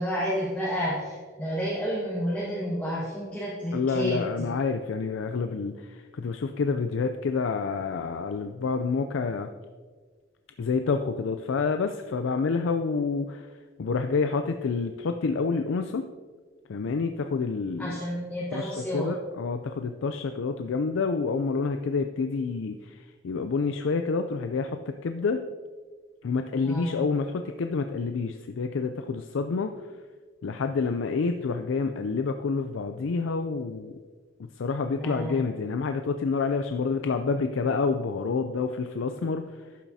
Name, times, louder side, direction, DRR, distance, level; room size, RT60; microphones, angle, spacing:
voice 1, 0.0-4.5 17.8-19.1 26.6-27.0 34.9-35.4, equal, 10° left, -8 dB, 1.5 m, -30 dB
voice 2, 3.7-9.5 10.6-13.5 13.8-16.0 16.7-18.0 18.5-25.4 26.2-29.7 30.4-34.0 34.6-39.4, left 4 dB, 75° left, 7 dB, 0.4 m, -28 dB
12.0 x 7.2 x 2.7 m, 1.5 s
head